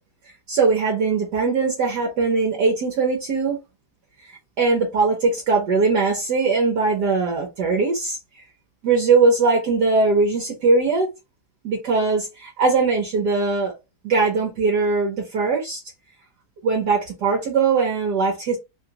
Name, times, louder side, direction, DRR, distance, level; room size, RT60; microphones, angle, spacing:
voice 1, 0.5-3.6 4.6-8.2 8.8-11.1 11.6-13.7 14.0-15.8 16.6-18.6, right 4 dB, 60° right, 1.3 m, -20 dB
3.8 x 2.4 x 2.9 m
omnidirectional pair, 2.2 m